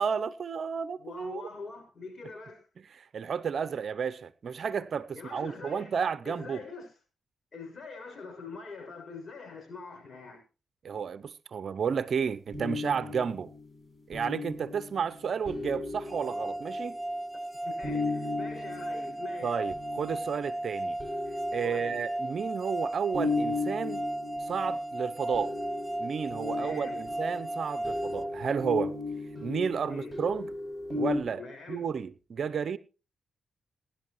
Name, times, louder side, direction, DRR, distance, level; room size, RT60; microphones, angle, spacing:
voice 1, 0.0-1.4 2.9-6.6 10.8-13.5 14.1-17.0 19.4-21.0 21.5-24.0 24.5-25.5 26.0-29.0 29.4-30.5 31.0-31.4 31.7-32.8, right 6 dB, 60° right, 0.6 m, -32 dB
voice 2, 1.0-2.6 5.1-6.0 6.2-6.9 7.5-10.4 17.3-19.6 21.6-22.1 26.5-27.0 29.9-30.1 31.3-31.8, left 4 dB, 50° left, 6.6 m, -44 dB
sound 1, 12.5-17.1 17.8-20.5 21.0-22.4 23.1-31.2, left 3 dB, 5° left, 7.7 m, -36 dB
sound 2, 16.1-29.0, right 1 dB, 20° right, 0.8 m, -35 dB
19.0 x 11.5 x 3.1 m
cardioid pair, 60°, 0 cm